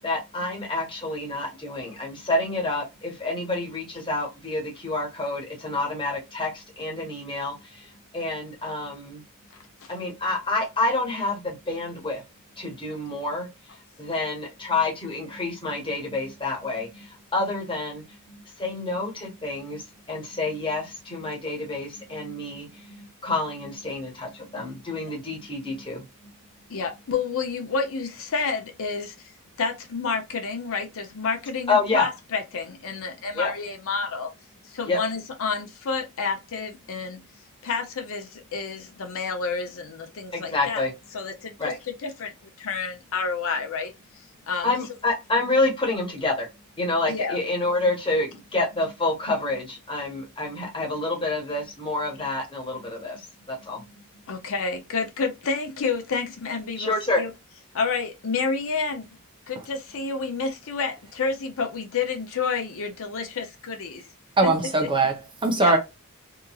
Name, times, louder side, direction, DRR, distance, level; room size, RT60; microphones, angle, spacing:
voice 1, 0.0-9.2 9.9-12.2 12.6-26.1 31.7-32.1 33.3-33.5 34.9-35.0 40.3-40.9 41.6-41.8 44.6-46.5 46.8-53.8 56.8-57.2, left 2 dB, 25° left, 1.2 m, -28 dB
voice 2, 26.7-29.3 29.6-34.3 34.6-37.2 37.6-40.8 41.1-41.5 41.9-43.9 44.5-44.7 47.1-47.4 54.3-57.3 57.7-59.1 59.5-64.1 64.4-64.5 65.6-65.8, left 5 dB, 65° left, 0.6 m, -29 dB
voice 3, 64.4-65.8, right 2 dB, 20° right, 0.6 m, -21 dB
2.8 x 2.5 x 2.3 m
head